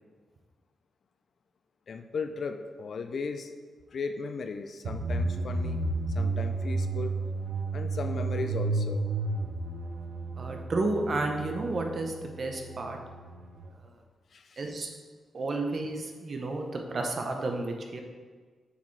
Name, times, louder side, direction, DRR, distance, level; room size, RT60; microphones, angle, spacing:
voice 1, 1.9-3.5 3.9-5.8 6.1-7.1 7.7-9.0 14.3-14.7, left 4 dB, 50° left, 7 dB, 0.4 m, -36 dB
sound 1, 4.8-13.7, right 3 dB, 75° right, 0.8 m, -32 dB
voice 2, 10.4-13.0 14.6-14.9 15.3-18.0, right 2 dB, 40° right, 3 dB, 0.8 m, -31 dB
7.0 x 6.5 x 3.3 m, 1.5 s
wide cardioid pair, 165°, 0 cm